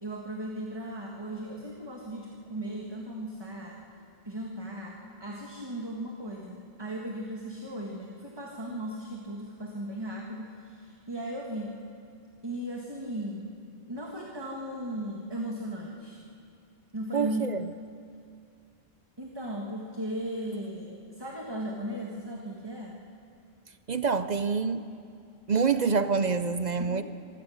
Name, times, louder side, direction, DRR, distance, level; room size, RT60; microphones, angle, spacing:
voice 1, 0.0-3.8 4.3-11.8 12.4-13.5 13.9-16.2 16.9-17.5 19.2-23.0 26.8-27.0, right 1 dB, 25° right, -1 dB, 1.6 m, -37 dB
voice 2, 17.1-17.6 23.9-24.9 25.5-27.0, right 5 dB, 50° right, 11 dB, 0.6 m, -26 dB
25.5 x 16.0 x 6.4 m, 2.5 s
omnidirectional pair, 1.1 m